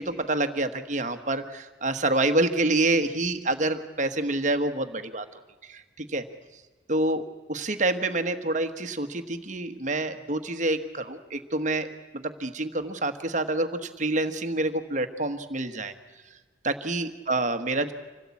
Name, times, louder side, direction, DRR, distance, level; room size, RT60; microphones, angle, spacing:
voice 1, 0.0-5.2 5.7-6.2 6.9-15.9 16.6-17.9, right 2 dB, 40° right, 9 dB, 1.3 m, -27 dB
26.0 x 17.0 x 8.4 m, 1.3 s
head